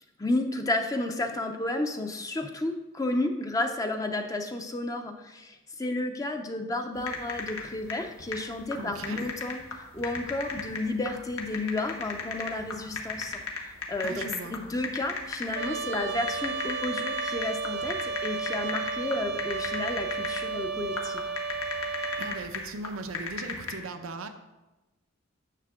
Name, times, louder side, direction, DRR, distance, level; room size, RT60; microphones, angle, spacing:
voice 1, 0.2-21.3, left 2 dB, 15° left, 4 dB, 0.6 m, -32 dB
sound 1, 7.0-23.7, left 4 dB, 85° left, 1.5 m, -36 dB
voice 2, 8.8-9.2 14.0-14.6 22.2-24.3, right 2 dB, 85° right, 8 dB, 0.8 m, -38 dB
Trumpet, 15.5-22.4, right 5 dB, 50° right, 0.5 m, -33 dB
10.0 x 6.8 x 3.7 m, 1.1 s
head